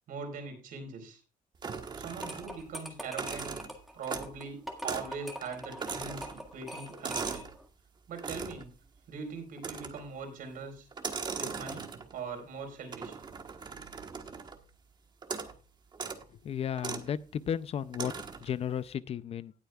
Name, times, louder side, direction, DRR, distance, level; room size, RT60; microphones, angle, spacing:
voice 1, 0.1-1.2 1.9-3.5 3.9-7.4 8.1-8.7 9.1-10.9 11.4-11.9 12.1-13.2, right 4 dB, 70° right, 3 dB, 4.2 m, -41 dB
sound 1, 1.6-2.7 3.0-4.4 4.8-5.2 5.4-7.6 8.2-8.7 9.6-10.1 10.9-12.2 12.9-14.6 15.2-15.6 15.9-16.2 16.8-17.1 17.9-18.5, right 5 dB, 30° right, 1.2 m, -39 dB
sound 2, 2.1-7.6, equal, ahead, 1.7 m, -43 dB
voice 2, 16.3-18.1 18.4-19.5, left 9 dB, 45° left, 16 dB, 0.5 m, -34 dB
18.5 x 8.0 x 2.3 m, 0.32 s
cardioid pair, 140°, 15 cm